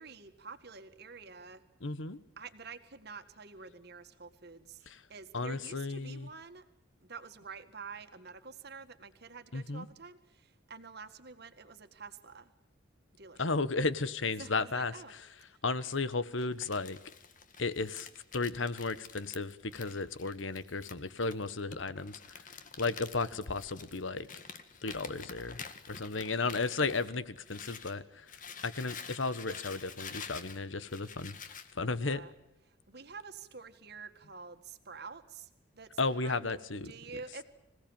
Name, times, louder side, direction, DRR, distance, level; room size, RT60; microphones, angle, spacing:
voice 1, 0.0-1.6 2.4-4.8 5.1-6.6 7.0-12.5 13.1-13.5 14.4-15.1 15.5-15.6 26.1-26.5 31.9-32.3 32.7-35.5 35.7-35.9 36.2-37.4, right 5 dB, 55° right, 7 dB, 1.9 m, -48 dB
voice 2, 1.8-2.2 4.9-5.0 5.3-6.3 9.5-9.9 13.4-14.9 15.6-17.0 17.6-22.2 22.8-24.3 24.8-25.6 25.9-28.3 28.6-31.3 31.7-32.2 36.0-36.9, left 3 dB, 75° left, 15 dB, 1.3 m, -34 dB
Crumpling crinkling, 16.4-28.0 28.3-31.7, left 6 dB, 40° left, 1.8 m, -48 dB
26.0 x 17.0 x 9.0 m, 0.87 s
head